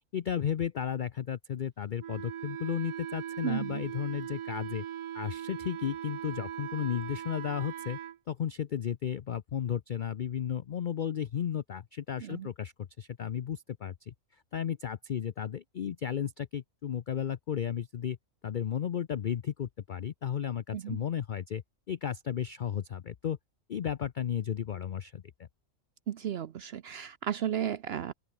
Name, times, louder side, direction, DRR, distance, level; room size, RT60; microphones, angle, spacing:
voice 1, 0.1-4.8 5.1-8.0 8.3-14.1 14.5-18.2 18.4-21.6 21.9-23.4 23.7-25.5, left 9 dB, 75° left, 0.4 m, -34 dB
Wind instrument woodwind instrument, 2.0-8.2, right 11 dB, 85° right, 1.4 m, -40 dB
voice 2, 3.4-3.8 12.2-12.5 20.7-21.0 26.1-28.1, right 9 dB, 60° right, 0.7 m, -34 dB
open air
omnidirectional pair, 1.5 m